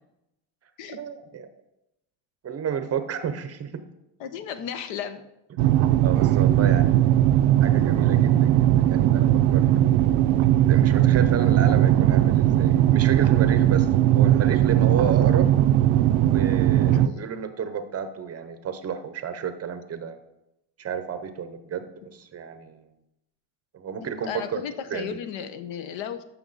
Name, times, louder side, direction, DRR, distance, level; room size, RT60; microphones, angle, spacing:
voice 1, 0.9-1.5 2.4-3.9 6.0-7.2 7.6-9.9 10.7-13.9 14.1-15.5 16.2-20.2 20.8-21.8 22.1-22.8 23.7-24.6 24.9-25.1, right 7 dB, 30° right, 10 dB, 0.6 m, -31 dB
voice 2, 4.2-5.2 16.9-17.3 24.0-26.2, left 8 dB, 70° left, 11 dB, 0.9 m, -34 dB
sound 1, 5.6-17.1, right 12 dB, 85° right, 0.6 m, -19 dB
14.0 x 6.1 x 3.9 m, 0.89 s
cardioid pair, 155°, 48 cm